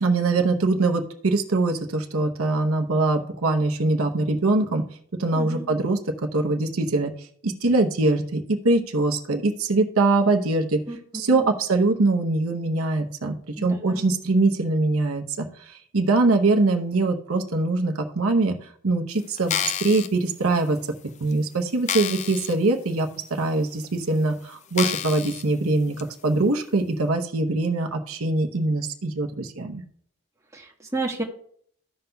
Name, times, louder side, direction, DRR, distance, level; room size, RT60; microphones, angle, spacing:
voice 1, 0.0-4.8 5.2-7.1 7.4-10.8 11.1-13.4 13.6-18.6 18.8-20.8 21.2-25.9 26.2-29.8, right 2 dB, 80° right, 4 dB, 0.8 m, -23 dB
voice 2, 5.3-5.7 10.9-11.0 11.3-11.5 13.6-14.1 30.5-31.2, right 2 dB, 15° right, 0 dB, 1.1 m, -32 dB
sound 1, 19.4-20.1 20.8-20.9 21.3-21.4 21.9-22.5 23.0-23.1 23.8-23.9 24.7-25.4 26.0-26.1, left 9 dB, 35° left, 0.3 m, -29 dB
15.0 x 5.4 x 2.3 m, 0.63 s
head